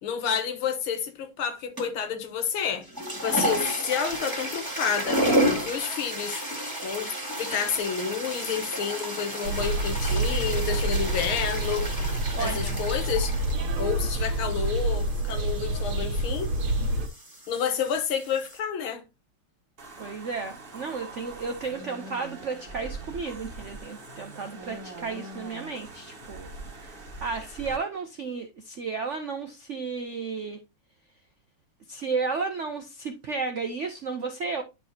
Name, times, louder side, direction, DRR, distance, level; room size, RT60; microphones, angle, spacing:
voice 1, 0.0-5.2 5.6-6.5 6.8-7.1 7.4-13.4 13.8-16.5 17.5-19.0, left 7 dB, 80° left, 1.9 m, -30 dB
sound 1, 1.8-2.1 2.8-18.6, right 1 dB, 10° right, 1.6 m, -32 dB
sound 2, 9.4-17.1, right 1 dB, 85° right, 2.0 m, -27 dB
voice 2, 12.3-12.8 20.0-26.5 26.8-30.6 31.9-34.6, right 4 dB, 70° right, 0.7 m, -33 dB
sound 3, 19.8-27.8, right 2 dB, 35° right, 1.2 m, -42 dB
10.5 x 4.5 x 2.8 m
omnidirectional pair, 2.3 m